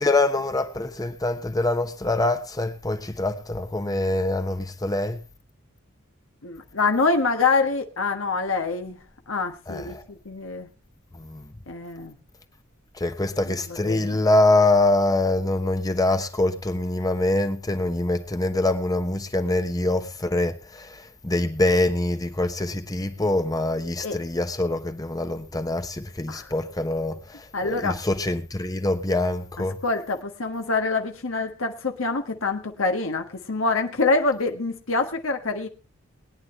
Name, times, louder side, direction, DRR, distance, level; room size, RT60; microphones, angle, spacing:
voice 1, 0.0-5.2 9.7-10.0 11.2-11.5 13.0-29.8, left 2 dB, 20° left, 1.0 m, -24 dB
voice 2, 6.4-9.0 9.3-10.7 11.7-12.1 13.5-13.6 13.8-14.2 24.0-24.2 26.3-26.5 27.5-28.0 29.6-35.7, left 3 dB, 65° left, 1.4 m, -25 dB
21.5 x 9.8 x 3.2 m
head